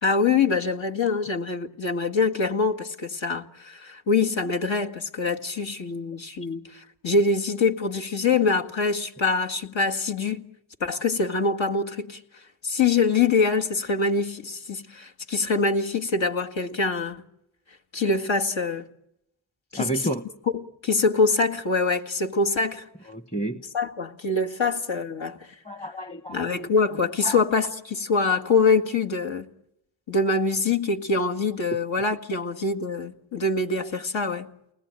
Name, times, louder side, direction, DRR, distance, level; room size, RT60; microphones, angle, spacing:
voice 1, 0.0-10.4 10.8-12.2 12.6-17.2 17.9-18.9 19.7-19.9 20.5-22.9 23.7-25.4 26.3-29.5 30.1-34.5, left 4 dB, 65° left, 2.0 m, -24 dB
voice 2, 19.7-20.2 23.1-23.6 25.6-26.7 27.2-27.4, right 1 dB, 15° left, 1.2 m, -31 dB
29.0 x 20.5 x 9.1 m
cardioid pair, 45°, 49 cm